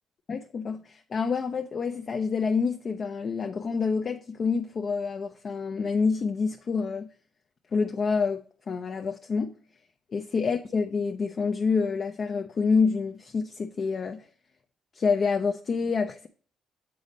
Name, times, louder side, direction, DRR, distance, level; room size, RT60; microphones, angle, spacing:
voice 1, 0.3-7.1 7.7-9.5 10.1-14.2 14.9-16.3, left 5 dB, 45° left, 0.5 m, -27 dB
6.9 x 4.1 x 4.9 m
cardioid pair, 100°, 0 cm